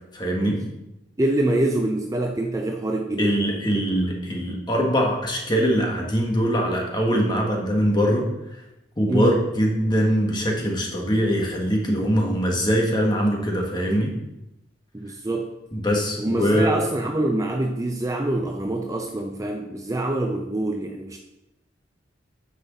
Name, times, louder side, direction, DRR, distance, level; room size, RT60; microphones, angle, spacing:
voice 1, 0.1-0.6 3.2-8.3 9.0-14.1 15.7-16.8, equal, 25° left, 0 dB, 1.5 m, -22 dB
voice 2, 1.2-3.8 9.1-9.4 14.9-15.5 16.2-21.2, right 1 dB, 15° right, 3 dB, 0.5 m, -25 dB
9.3 x 6.0 x 4.0 m, 0.92 s
head